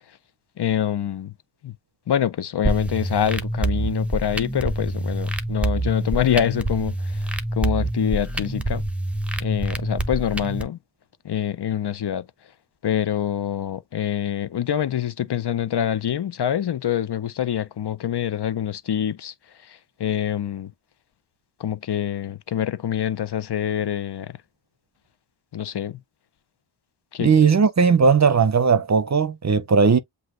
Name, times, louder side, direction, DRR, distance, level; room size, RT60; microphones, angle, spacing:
voice 1, 0.6-1.3 1.6-1.7 2.1-6.9 7.6-8.8 9.4-10.8 11.2-12.2 12.8-19.3 20.0-20.7 21.6-24.3 25.5-26.0 27.1-27.6, left 9 dB, 65° left, 0.6 m, -25 dB
sound 1, 2.6-10.6, right 2 dB, 5° right, 0.7 m, -26 dB
voice 2, 27.2-30.0, right 5 dB, 40° right, 0.6 m, -17 dB
7.8 x 2.7 x 2.4 m
wide cardioid pair, 75°, 45 cm